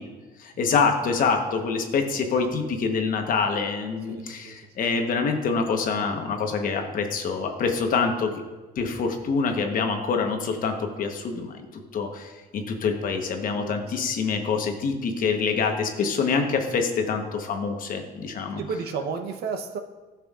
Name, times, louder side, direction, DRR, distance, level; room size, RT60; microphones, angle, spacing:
voice 1, 0.4-8.4 8.8-11.7 11.9-18.6, left 5 dB, 55° left, 4 dB, 1.1 m, -26 dB
voice 2, 4.1-4.6 13.6-13.8 18.6-19.8, right 5 dB, 70° right, 6 dB, 0.8 m, -32 dB
12.5 x 6.0 x 2.4 m, 1.3 s
cardioid pair, 110°, 17 cm